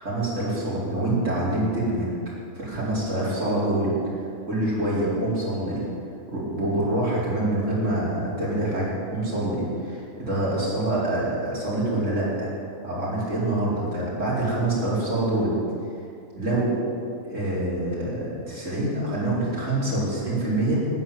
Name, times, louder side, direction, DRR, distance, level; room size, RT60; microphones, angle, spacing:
voice 1, 0.0-2.1 2.5-4.0 4.5-5.8 6.3-12.5 12.8-15.6 16.3-16.8 17.2-20.8, right 1 dB, 70° right, -7 dB, 4.7 m, -26 dB
13.0 x 9.9 x 7.6 m, 2.5 s
omnidirectional pair, 1.4 m